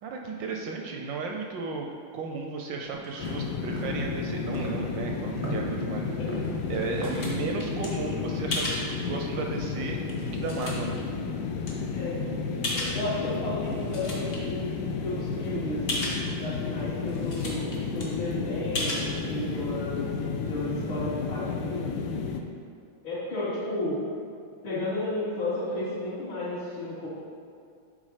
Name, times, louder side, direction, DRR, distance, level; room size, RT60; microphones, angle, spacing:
voice 1, 0.0-1.9 2.1-6.2 6.7-11.0, right 4 dB, 75° right, 1 dB, 1.1 m, -34 dB
sound 1, 2.8-9.3, equal, 30° right, 0.3 m, -41 dB
sound 2, 3.2-22.4, left 5 dB, 85° left, 0.9 m, -32 dB
sound 3, 6.4-7.9 8.5-8.8 9.5-9.6 10.1-11.0 11.7-11.8 12.6-13.3 13.6-14.4 14.8-14.9 15.1-15.2 15.9-16.2 16.8-16.9 17.1-17.7 18.0-18.1 18.8-19.1, left 2 dB, 40° left, 1.3 m, -33 dB
voice 2, 11.9-12.2 12.5-20.1 20.5-22.0 23.0-23.9 24.6-27.1, left 1 dB, 65° left, -13 dB, 2.5 m, -33 dB
8.1 x 3.8 x 4.8 m, 2.3 s
omnidirectional pair, 2.4 m